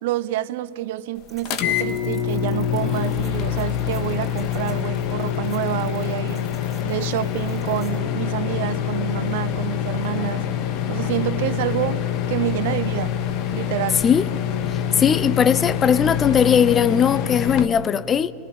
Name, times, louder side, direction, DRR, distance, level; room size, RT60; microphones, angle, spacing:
voice 1, 0.0-6.5 6.8-10.5 10.9-13.2 13.5-14.0, right 14 dB, 50° right, 0.8 m, -28 dB
sound 1, 1.3-8.0, right 4 dB, 10° right, 5.8 m, -51 dB
sound 2, 1.4-17.7, left 9 dB, 40° left, 1.8 m, -25 dB
voice 2, 15.0-18.3, left 7 dB, 20° left, 0.7 m, -18 dB
30.0 x 21.5 x 9.0 m
figure-of-eight pair, 90°, 0 cm